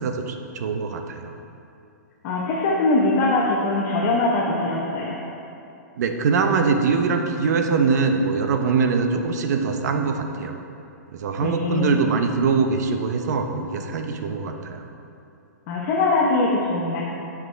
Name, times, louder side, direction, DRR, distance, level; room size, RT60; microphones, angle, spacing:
voice 1, 0.0-1.3 6.0-10.6 11.1-14.9, right 5 dB, 65° right, 5 dB, 0.8 m, -23 dB
voice 2, 2.2-5.2 11.4-12.1 15.7-17.0, left 2 dB, 40° left, -4 dB, 1.0 m, -22 dB
12.0 x 4.9 x 3.3 m, 2.7 s
hypercardioid pair, 140°, 10 cm